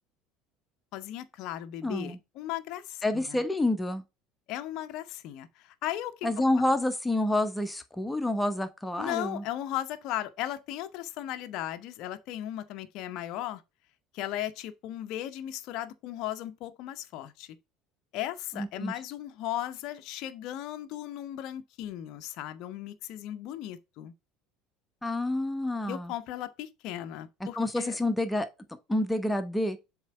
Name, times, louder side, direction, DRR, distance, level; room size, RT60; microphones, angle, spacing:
voice 1, 0.9-3.4 4.5-6.1 9.0-13.6 14.1-17.6 18.1-24.1 25.9-28.0, left 13 dB, 55° left, 0.7 m, -36 dB
voice 2, 1.8-2.2 3.0-4.0 6.2-9.4 18.6-18.9 25.0-26.1 27.6-28.5 28.9-29.8, left 1 dB, 10° left, 1.1 m, -28 dB
7.3 x 3.2 x 4.7 m
figure-of-eight pair, 65°, 0 cm